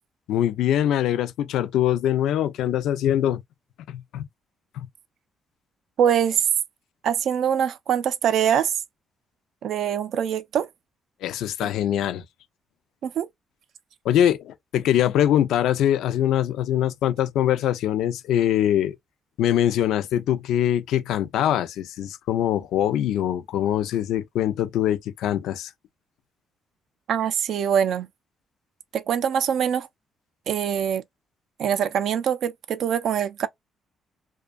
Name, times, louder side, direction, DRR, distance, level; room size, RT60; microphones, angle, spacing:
voice 1, 0.3-3.4 3.9-4.3 4.8-4.9 11.2-12.2 14.0-18.9 19.4-25.7, left 11 dB, 85° left, 0.4 m, -23 dB
voice 2, 6.0-6.5 7.0-8.7 9.6-10.7 11.6-11.7 13.0-13.3 27.1-28.1 28.9-29.9 30.5-31.0 31.6-33.5, right 8 dB, 70° right, 0.3 m, -23 dB
2.5 x 2.2 x 2.3 m
cardioid pair, 90°, 0 cm